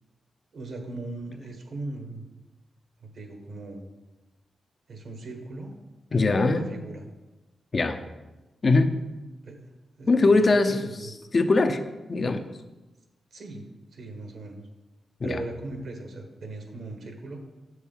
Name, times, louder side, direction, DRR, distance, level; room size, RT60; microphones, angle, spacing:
voice 1, 0.5-2.2 3.0-3.9 4.9-5.7 6.4-7.1 9.4-9.6 10.0-11.1 13.3-13.6 13.9-14.6 15.2-17.4, right 2 dB, 65° right, 4 dB, 1.5 m, -38 dB
voice 2, 6.1-6.7 7.7-8.0 8.6-8.9 10.1-10.8 11.3-11.8 12.1-12.4 15.2-15.4, left 3 dB, 40° left, 7 dB, 0.7 m, -21 dB
8.1 x 6.4 x 5.5 m, 1.1 s
wide cardioid pair, 120°, 0 cm